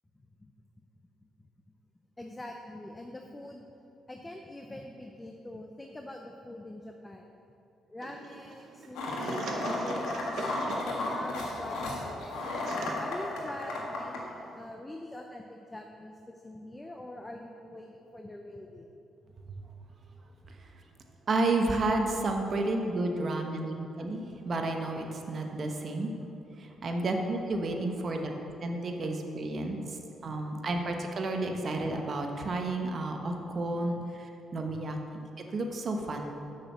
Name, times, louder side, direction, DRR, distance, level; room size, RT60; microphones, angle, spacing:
voice 1, 2.2-3.6 4.1-7.3 7.9-10.4 10.8-12.5 13.0-19.0 29.4-29.9 34.0-34.1 34.7-34.8, left 1 dB, 15° left, 3 dB, 0.6 m, -45 dB
sound 1, 8.0-14.7, right 3 dB, 65° right, 1.1 m, -42 dB
sound 2, 9.0-14.2, left 2 dB, 85° left, 1.6 m, -34 dB
voice 2, 21.3-26.1 26.6-36.3, right 2 dB, 45° right, 3 dB, 1.1 m, -31 dB
6.4 x 6.3 x 7.2 m, 2.8 s
cardioid pair, 90°, 0 cm